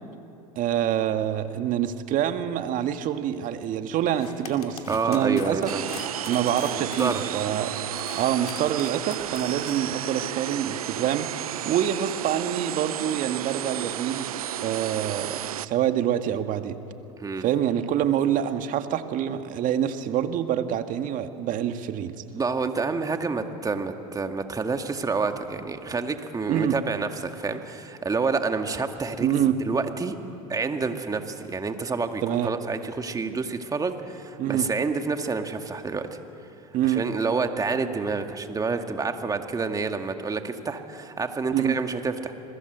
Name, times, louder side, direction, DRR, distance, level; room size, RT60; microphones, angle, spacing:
voice 1, 0.5-5.7 6.3-7.7 8.1-11.3 11.6-16.8 17.4-22.1 26.5-26.8 29.2-29.6 32.2-32.5 34.4-34.7 36.7-37.0 41.5-41.8, right 10 dB, 45° right, 8 dB, 1.8 m, -26 dB
sound 1, 4.0-9.8, left 7 dB, 90° left, 2.8 m, -43 dB
voice 2, 4.9-5.8 6.8-7.2 17.2-17.4 22.3-30.2 30.5-36.1 36.8-42.3, right 4 dB, 20° right, 6 dB, 2.1 m, -28 dB
sound 2, 5.7-15.7, right 11 dB, 85° right, 0.8 m, -32 dB
28.0 x 21.5 x 8.1 m, 2.8 s
hypercardioid pair, 90°, 18 cm